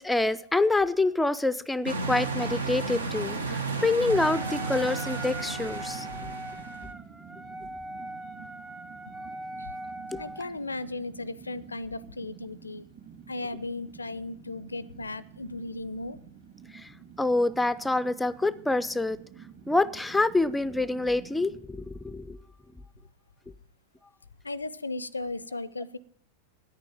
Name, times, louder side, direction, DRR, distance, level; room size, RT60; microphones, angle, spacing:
voice 1, 0.0-6.3 10.1-10.2 16.7-16.9 17.2-19.2 19.7-22.4, left 2 dB, 5° left, 17 dB, 0.4 m, -26 dB
sound 1, 1.8-6.9, right 3 dB, 75° right, 1.2 m, -33 dB
Wind instrument woodwind instrument, 4.1-10.5, right 1 dB, 15° right, 0.9 m, -40 dB
Fire, 4.1-21.6, right 7 dB, 40° right, 2.5 m, -50 dB
voice 2, 10.2-12.9 13.3-16.2 24.4-26.0, left 2 dB, 80° left, 20 dB, 0.5 m, -36 dB
9.9 x 8.9 x 8.9 m, 0.71 s
figure-of-eight pair, 90°, 0 cm